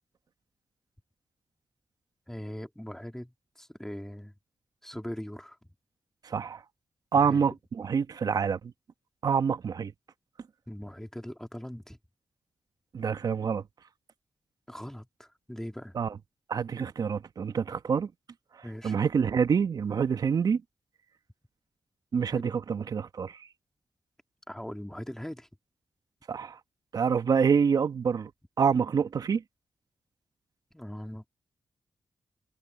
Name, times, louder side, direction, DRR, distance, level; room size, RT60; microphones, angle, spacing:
voice 1, 2.3-4.3 4.8-5.6 7.1-7.4 10.7-12.0 14.7-16.0 18.6-19.0 22.3-22.5 24.5-25.5 30.7-31.3, equal, 5° left, 2.8 m, -40 dB
voice 2, 6.2-6.6 7.1-8.7 9.2-9.9 12.9-13.6 15.9-16.1 16.5-18.1 18.8-20.6 22.1-23.4 26.3-26.6 26.9-28.3 28.6-29.4, right 6 dB, 65° right, 1.3 m, -26 dB
supercardioid pair, 40°, 7 cm